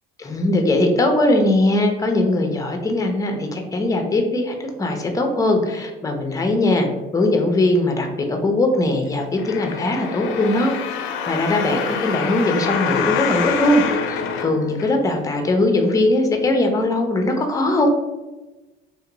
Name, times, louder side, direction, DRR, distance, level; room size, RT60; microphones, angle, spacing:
voice 1, 0.2-6.9 7.1-10.7 11.0-17.9, left 2 dB, 15° left, 4 dB, 0.5 m, -20 dB
sound 1, 9.4-15.3 15.9-16.0, left 7 dB, 70° left, 0.4 m, -26 dB
3.2 x 2.4 x 2.9 m, 1.1 s
cardioid pair, 120°, 21 cm